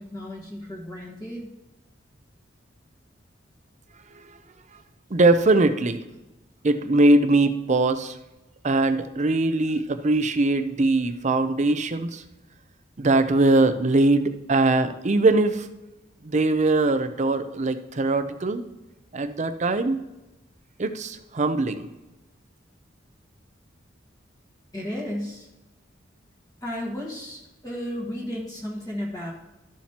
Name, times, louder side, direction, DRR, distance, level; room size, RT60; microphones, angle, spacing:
voice 1, 0.0-1.5 24.7-25.5 26.6-29.3, equal, 20° left, -3 dB, 1.5 m, -33 dB
voice 2, 5.1-6.0 6.6-8.2 8.6-12.2 13.0-15.7 16.2-18.6 19.1-20.1 20.8-21.9, right 2 dB, 40° right, 10 dB, 0.6 m, -21 dB
13.0 x 7.3 x 2.9 m, 1.0 s
head